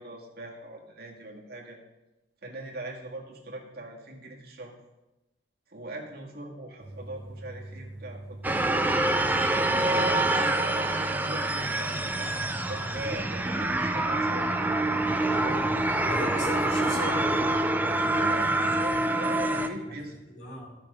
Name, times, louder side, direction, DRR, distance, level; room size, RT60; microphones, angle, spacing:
voice 1, 0.0-1.8 2.4-4.7 5.7-9.2 9.7-14.7 18.0-20.2, right 1 dB, 55° right, -1 dB, 1.8 m, -41 dB
sound 1, 6.8-18.9, right 1 dB, 85° right, 1.8 m, -43 dB
sound 2, 8.4-19.7, right 2 dB, 10° right, 0.5 m, -26 dB
voice 2, 16.0-17.4 19.9-20.0 20.3-20.8, equal, 70° left, -2 dB, 4.1 m, -36 dB
13.5 x 5.9 x 5.1 m, 1.0 s
head